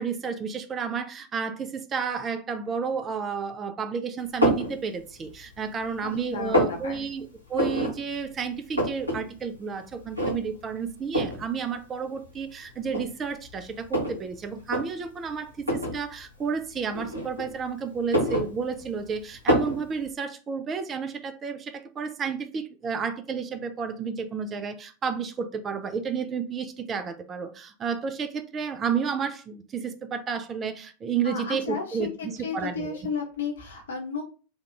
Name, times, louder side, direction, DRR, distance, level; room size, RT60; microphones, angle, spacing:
voice 1, 0.0-33.0, right 6 dB, 25° right, 0.3 m, -31 dB
sound 1, 4.4-4.7 5.3-5.9 6.2-6.8 7.5-7.9 8.3-8.4 8.5-9.2 9.5-9.6 10.2-10.6 11.1-11.4 12.3-12.4 12.9-14.2 14.6-14.8 15.6-16.0 16.9-17.6 18.0-19.0 19.5-19.8, equal, 90° right, 0.9 m, -25 dB
voice 2, 6.0-7.0 31.2-34.2, left 5 dB, 65° left, 0.9 m, -33 dB
3.4 x 2.3 x 3.1 m
figure-of-eight pair, 90°, 0 cm